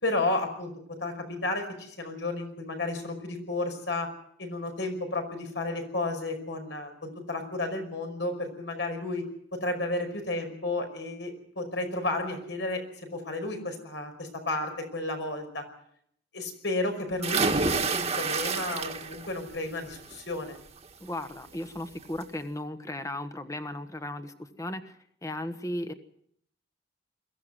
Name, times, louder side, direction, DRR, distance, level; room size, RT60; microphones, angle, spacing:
voice 1, 0.0-4.1 4.4-9.2 9.5-15.7 16.3-20.6, left 2 dB, 75° left, 5 dB, 5.4 m, -32 dB
sound 1, 17.2-19.3 19.7-20.1 21.5-21.6 22.0-22.1, right 4 dB, 35° right, 1.6 m, -28 dB
voice 2, 21.0-25.9, left 1 dB, 15° left, 9 dB, 1.2 m, -36 dB
22.5 x 15.0 x 7.9 m, 0.69 s
head